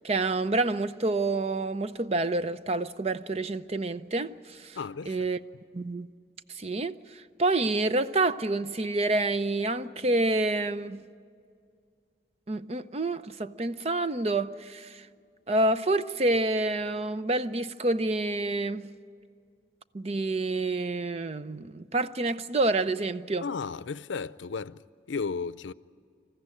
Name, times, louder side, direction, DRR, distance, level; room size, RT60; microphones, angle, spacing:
voice 1, 0.0-4.8 5.1-5.4 5.7-6.1 6.5-11.0 12.5-15.1 15.5-18.9 19.9-23.4, right 2 dB, 35° right, 0.5 m, -28 dB
voice 2, 4.7-5.2 23.4-25.7, left 5 dB, 90° left, 0.5 m, -34 dB
27.0 x 14.5 x 9.9 m
head